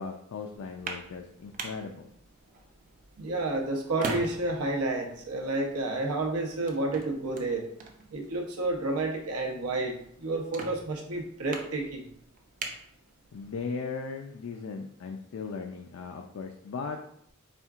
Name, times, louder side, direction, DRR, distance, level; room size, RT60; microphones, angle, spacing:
voice 1, 0.0-2.1 13.3-17.0, left 4 dB, 65° left, 3 dB, 0.4 m, -37 dB
sound 1, 0.5-13.6, right 3 dB, 35° right, 0.4 m, -43 dB
voice 2, 3.2-7.7 8.1-12.1, right 2 dB, 90° right, 1 dB, 0.8 m, -30 dB
4.3 x 3.5 x 2.4 m, 0.69 s
head